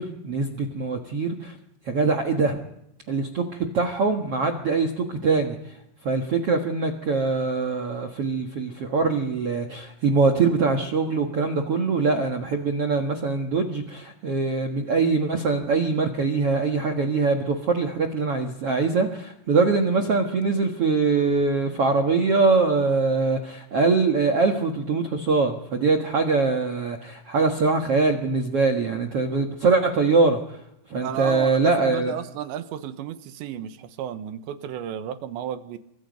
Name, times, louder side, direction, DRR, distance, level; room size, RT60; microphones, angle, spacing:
voice 1, 0.0-1.6 1.8-2.6 3.1-5.8 6.0-30.6 30.9-32.1, right 4 dB, 65° right, 4 dB, 1.5 m, -23 dB
voice 2, 31.0-35.8, right 9 dB, 90° right, 10 dB, 3.5 m, -33 dB
28.5 x 24.5 x 5.3 m, 0.81 s
omnidirectional pair, 5.0 m